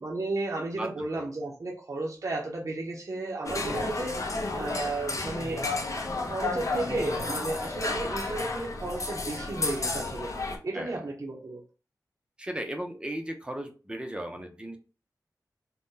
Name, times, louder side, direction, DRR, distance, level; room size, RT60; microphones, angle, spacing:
voice 1, 0.0-5.6 6.2-10.3 10.6-11.6, right 2 dB, 50° right, -3 dB, 0.7 m, -33 dB
voice 2, 0.7-1.3 10.7-11.0 12.4-14.8, right 1 dB, 15° right, 4 dB, 0.6 m, -36 dB
sound 1, 3.4-10.6, left 3 dB, 50° left, 0.6 m, -32 dB
2.7 x 2.1 x 3.7 m, 0.34 s
wide cardioid pair, 70°, 7 cm